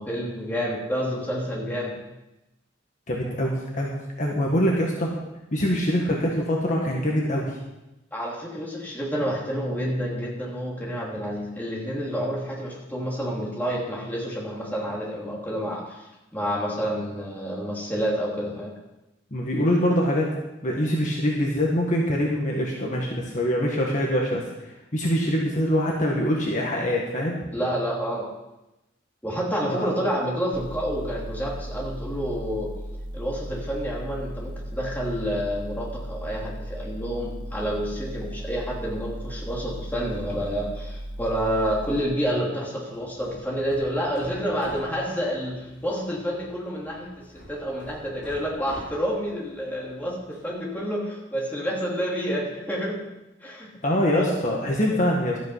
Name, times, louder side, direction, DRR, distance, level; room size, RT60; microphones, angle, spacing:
voice 1, 0.0-1.9 8.1-16.0 16.3-18.7 27.5-28.3 29.2-32.7 33.1-53.0 53.4-53.7 54.1-54.3 54.9-55.1, equal, 10° left, -4 dB, 2.8 m, -29 dB
voice 2, 3.1-3.9 4.2-5.1 5.5-7.6 19.3-20.3 20.6-27.5 29.7-29.9 53.8-55.4, equal, 40° left, -2 dB, 1.7 m, -24 dB
sound 1, 30.5-42.0, equal, 20° right, 1.8 m, -36 dB
Hammer, 42.9-50.7, equal, 60° left, 4.4 m, -46 dB
13.0 x 9.2 x 5.6 m, 0.97 s
head